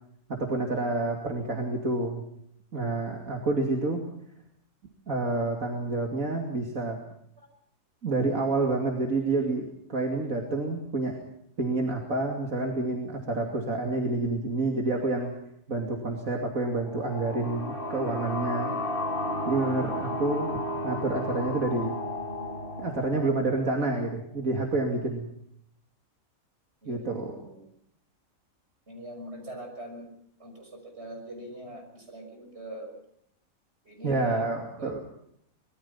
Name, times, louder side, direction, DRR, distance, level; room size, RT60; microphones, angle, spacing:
voice 1, 0.3-2.2 2.7-4.0 5.1-7.0 8.0-11.2 11.6-15.3 15.7-18.7 19.5-20.5 20.8-22.0 22.8-25.3 26.8-27.4 34.0-35.0, right 2 dB, 70° right, 1 dB, 3.1 m, -28 dB
sound 1, 16.8-24.2, left 1 dB, 40° left, 2.6 m, -33 dB
voice 2, 26.8-27.7 28.9-30.1 30.4-32.9 33.8-34.4 34.8-35.0, right 1 dB, 50° right, 3 dB, 6.7 m, -42 dB
25.0 x 21.5 x 5.7 m, 0.71 s
omnidirectional pair, 1.5 m